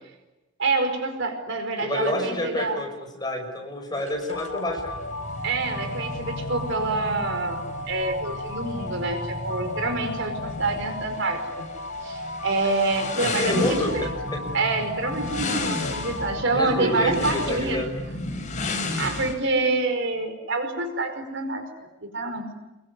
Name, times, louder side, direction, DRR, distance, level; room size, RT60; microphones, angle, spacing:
voice 1, 0.6-2.8 5.4-11.7 12.0-14.1 14.5-17.9 18.9-21.7 22.0-22.5, right 3 dB, 60° right, 7 dB, 5.1 m, -27 dB
voice 2, 1.8-5.1 13.2-14.4 16.5-17.9, left 1 dB, 20° left, 4 dB, 6.0 m, -28 dB
sound 1, 4.0-19.3, left 2 dB, 35° left, 4.3 m, -34 dB
sound 2, 4.3-17.5, left 2 dB, 65° left, 6.6 m, -35 dB
26.5 x 23.0 x 9.6 m, 1.0 s
head